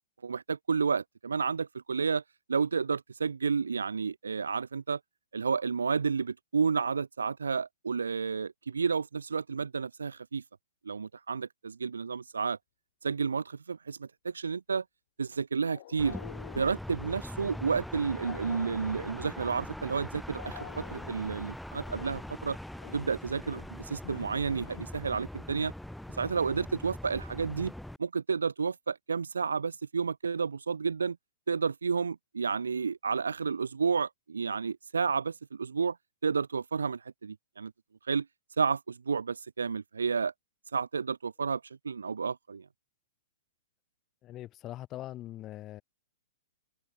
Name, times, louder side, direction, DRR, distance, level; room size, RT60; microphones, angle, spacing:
voice 1, 0.2-2.2 2.5-5.0 5.3-10.4 10.8-12.6 13.0-14.8 15.2-16.2 16.5-22.6 22.9-25.7 26.2-27.7 28.0-31.2 31.5-36.0 36.2-37.7 38.1-38.3 38.6-40.3 40.7-42.7, right 5 dB, 80° right, 0.8 m, -31 dB
sound 1, 15.6-16.9 18.1-19.3 20.3-21.2 21.8-22.3 22.8-23.1 23.4-23.8 24.0-24.9, left 14 dB, 55° left, 4.8 m, -48 dB
sound 2, 16.0-28.0, left 1 dB, ahead, 0.4 m, -42 dB
voice 2, 44.2-45.8, left 14 dB, 30° left, 2.8 m, -42 dB
open air
hypercardioid pair, 115°, 0 cm